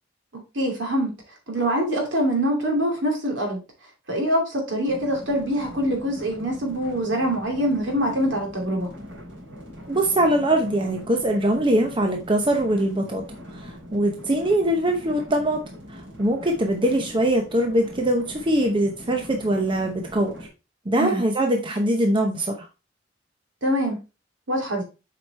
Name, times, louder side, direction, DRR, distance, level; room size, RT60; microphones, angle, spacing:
voice 1, 0.3-1.1 1.5-3.6 4.1-8.9 21.0-21.2 23.6-24.0 24.5-24.8, equal, 70° right, 1 dB, 2.8 m, -24 dB
sound 1, 4.9-20.5, equal, 85° right, 4.0 m, -42 dB
voice 2, 9.9-13.2 13.5-15.6 15.9-20.5 20.9-22.7, right 1 dB, 25° right, 3 dB, 0.8 m, -22 dB
7.3 x 5.1 x 3.3 m, 0.29 s
head